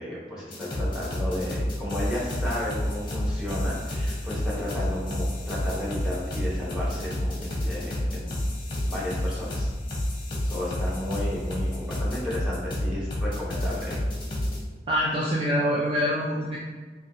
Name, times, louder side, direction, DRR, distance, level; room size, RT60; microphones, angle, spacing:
voice 1, 0.0-8.4 8.8-9.7 10.4-14.0, left 1 dB, 5° right, -7 dB, 0.9 m, -33 dB
sound 1, 0.5-14.6, left 1 dB, 25° left, 0.8 m, -29 dB
voice 2, 14.9-16.6, equal, 30° right, -6 dB, 0.3 m, -25 dB
4.3 x 2.7 x 2.7 m, 1.4 s
head